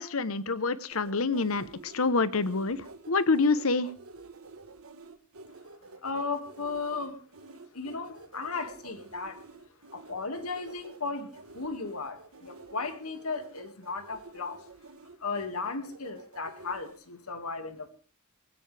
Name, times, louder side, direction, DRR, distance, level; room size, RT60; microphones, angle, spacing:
voice 1, 0.0-3.9, left 3 dB, 70° left, 15 dB, 1.0 m, -27 dB
sound 1, 0.9-17.0, right 3 dB, 75° right, 1.4 m, -50 dB
voice 2, 6.0-7.2 7.7-9.4 9.9-11.3 11.5-14.6 15.2-17.9, left 4 dB, 90° left, 8 dB, 2.2 m, -35 dB
19.0 x 16.5 x 3.4 m, 0.37 s
head